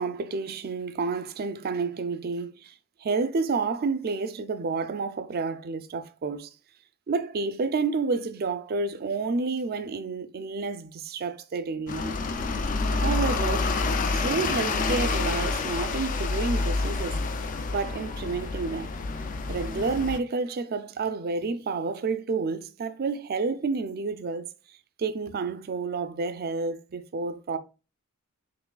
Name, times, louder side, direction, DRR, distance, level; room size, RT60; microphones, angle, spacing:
voice 1, 0.0-2.7 3.0-6.5 7.1-12.2 13.0-13.7 14.1-17.2 17.7-18.9 19.5-24.5 25.0-27.6, right 4 dB, 45° right, 0.4 m, -30 dB
sound 1, 11.9-20.2, left 3 dB, 35° left, 0.4 m, -28 dB
5.9 x 3.1 x 2.3 m
head